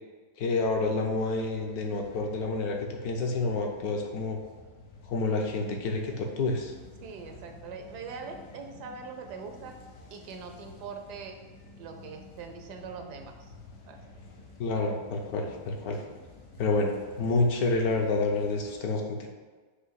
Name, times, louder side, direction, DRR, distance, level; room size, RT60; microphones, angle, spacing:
voice 1, 0.4-4.4 5.0-6.7 14.6-16.0 16.6-19.3, left 3 dB, 70° left, 2 dB, 1.3 m, -28 dB
sound 1, 0.6-18.7, left 2 dB, 90° left, 1.6 m, -51 dB
voice 2, 7.0-9.7 10.1-11.4 11.8-13.5 13.9-14.0, right 5 dB, 80° right, 5 dB, 1.3 m, -42 dB
6.7 x 2.7 x 5.6 m, 1.4 s
omnidirectional pair, 1.7 m